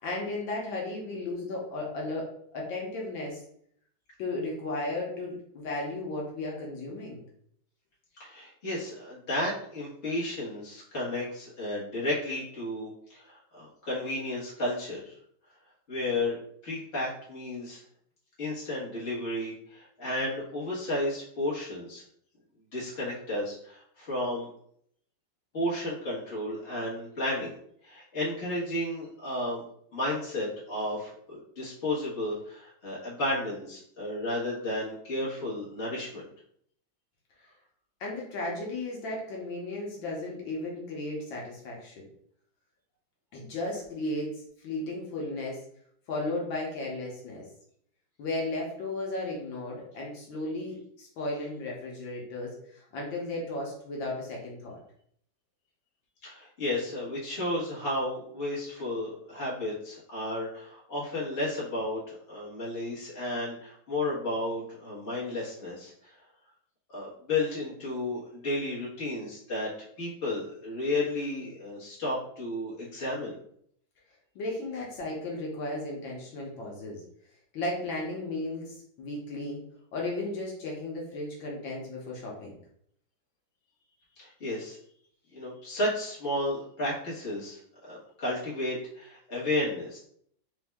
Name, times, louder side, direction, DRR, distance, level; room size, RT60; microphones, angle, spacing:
voice 1, 0.0-2.3 2.5-3.4 4.2-7.2 38.0-42.0 43.3-45.6 46.1-47.5 48.2-54.8 74.4-77.0 77.5-79.6 79.9-82.5, left 2 dB, 75° left, -2 dB, 1.6 m, -35 dB
voice 2, 8.2-15.1 15.9-16.4 16.6-17.8 18.4-22.0 22.7-24.5 25.5-27.6 27.8-29.6 29.9-36.2 56.2-66.1 66.9-69.7 70.0-73.4 84.2-84.8 85.3-90.0, left 1 dB, 40° left, -7 dB, 1.6 m, -33 dB
4.3 x 2.7 x 3.4 m, 0.66 s
omnidirectional pair, 2.1 m